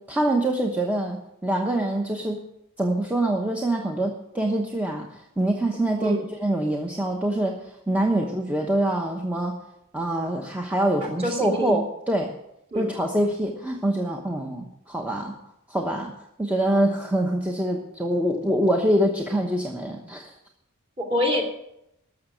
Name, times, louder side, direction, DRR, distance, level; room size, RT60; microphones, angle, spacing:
voice 1, 0.0-2.4 2.8-9.6 9.9-12.3 12.7-15.4 15.7-16.1 16.4-20.3, right 1 dB, 5° right, 1 dB, 1.0 m, -25 dB
voice 2, 11.2-11.8 12.7-12.9 21.0-21.4, equal, 25° right, 2 dB, 2.5 m, -25 dB
13.5 x 6.6 x 9.0 m, 0.82 s
head